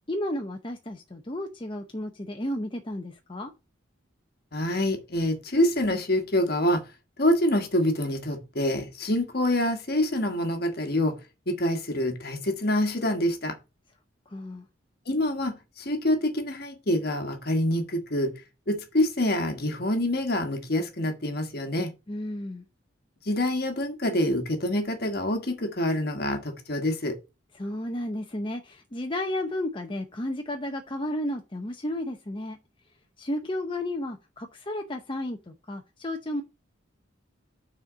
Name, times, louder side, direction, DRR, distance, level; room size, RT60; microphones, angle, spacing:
voice 1, 0.1-3.5 14.3-14.7 22.1-22.6 27.5-32.6 33.2-36.4, left 1 dB, 25° left, 0.8 m, -33 dB
voice 2, 4.5-6.8 7.2-11.2 11.5-13.6 15.1-18.4 18.7-21.9 23.3-27.2, left 1 dB, 50° left, 1.4 m, -26 dB
6.4 x 4.4 x 6.1 m
head